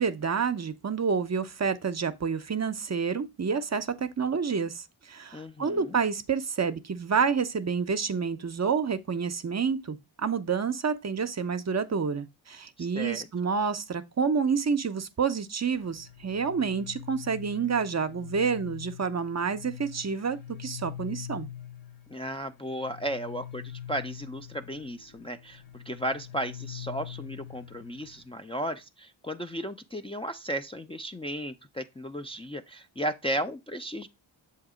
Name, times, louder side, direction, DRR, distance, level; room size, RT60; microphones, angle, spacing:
voice 1, 0.0-21.5, right 5 dB, 35° right, 0.6 m, -29 dB
voice 2, 5.3-6.0 12.8-13.3 22.1-34.1, equal, 10° left, 0.4 m, -35 dB
sound 1, 15.8-28.3, left 10 dB, 70° left, 1.1 m, -44 dB
7.1 x 2.8 x 4.9 m
cardioid pair, 55°, 47 cm